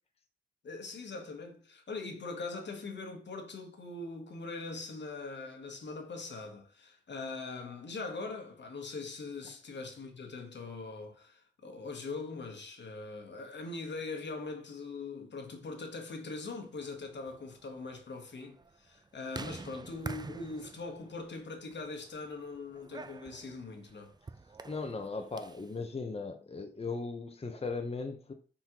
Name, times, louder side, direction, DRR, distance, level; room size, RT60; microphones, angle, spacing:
voice 1, 0.6-24.1, left 3 dB, 60° left, 1.1 m, -42 dB
sound 1, 16.7-25.8, right 3 dB, 20° right, 0.4 m, -48 dB
voice 2, 24.6-28.3, left 3 dB, 30° left, 0.6 m, -38 dB
4.2 x 3.7 x 2.8 m
supercardioid pair, 40°, 20 cm